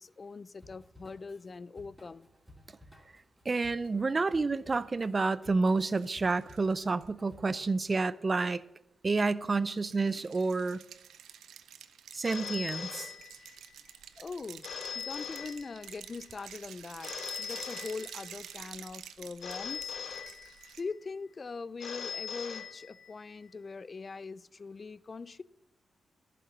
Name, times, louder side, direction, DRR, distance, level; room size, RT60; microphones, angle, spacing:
voice 1, 0.0-2.3 14.2-14.7 14.9-17.1 17.4-19.9 20.8-25.4, left 4 dB, 45° left, 0.4 m, -42 dB
Drum kit / Drum, 0.6-7.9, equal, ahead, 3.5 m, -57 dB
voice 2, 3.5-8.6 9.0-10.8 12.1-13.1, right 3 dB, 40° right, 0.5 m, -29 dB
sound 1, 5.7-7.1 9.7-20.8, right 9 dB, 90° right, 0.5 m, -50 dB
Telephone, 12.2-13.7 14.6-16.1 17.0-18.5 19.4-20.9 21.8-23.3, left 6 dB, 75° left, 1.3 m, -41 dB
11.0 x 6.8 x 7.4 m
cardioid pair, 60°, 0 cm